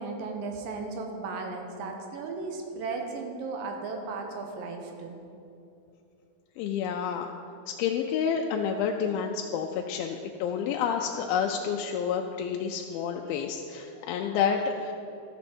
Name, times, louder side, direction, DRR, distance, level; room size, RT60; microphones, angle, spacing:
voice 1, 0.0-5.2, right 3 dB, 75° right, 3 dB, 2.4 m, -35 dB
voice 2, 6.6-7.3 7.7-14.9, left 7 dB, 80° left, 2 dB, 2.3 m, -29 dB
12.5 x 7.0 x 4.3 m, 2.7 s
omnidirectional pair, 4.3 m